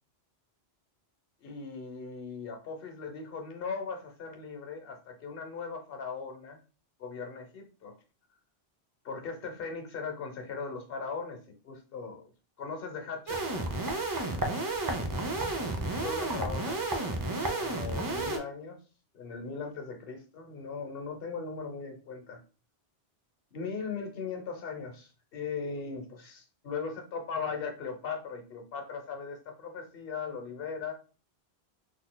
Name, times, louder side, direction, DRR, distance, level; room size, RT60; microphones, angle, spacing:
voice 1, 1.4-6.6 7.0-8.0 9.0-11.4 11.6-12.3 12.6-13.6 16.0-18.8 19.1-22.4 23.5-30.9, left 5 dB, 65° left, 4 dB, 1.0 m, -39 dB
sound 1, 13.3-18.4, right 2 dB, 35° right, 0.3 m, -32 dB
3.9 x 2.7 x 2.2 m, 0.35 s
omnidirectional pair, 1.1 m